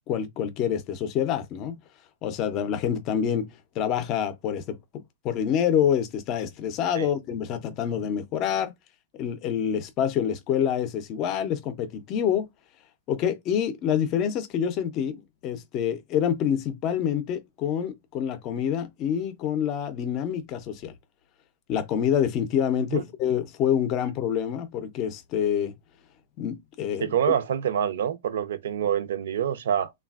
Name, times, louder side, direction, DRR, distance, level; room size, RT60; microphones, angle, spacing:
voice 1, 0.1-1.8 2.2-3.5 3.8-4.8 5.2-8.7 9.2-12.5 13.1-20.9 21.7-25.7 26.4-27.1, left 9 dB, 30° left, 0.5 m, -27 dB
voice 2, 27.0-29.9, right 9 dB, 75° right, 0.6 m, -26 dB
3.2 x 2.3 x 2.3 m
supercardioid pair, 160°, 0 cm